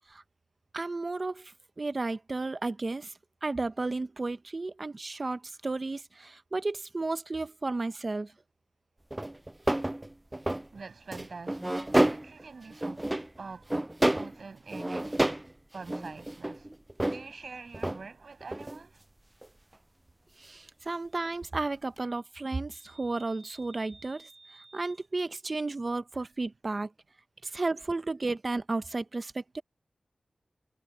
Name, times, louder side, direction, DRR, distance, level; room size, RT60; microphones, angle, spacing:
voice 1, 0.7-3.1 3.4-8.3 20.4-26.9 27.4-29.6, right 3 dB, 45° right, 1.0 m, -33 dB
sound 1, 9.1-10.7 11.1-12.4 12.7-13.4 13.7-14.4 14.7-15.5 15.8-17.3 17.7-18.0 18.4-18.8 19.4-19.5 22.0-22.1, right 1 dB, 20° right, 0.3 m, -29 dB
voice 2, 10.7-15.3 15.7-16.7 17.1-19.0 20.8-21.0 26.1-26.3, right 4 dB, 70° right, 7.4 m, -46 dB
cardioid pair, 55°, 0 cm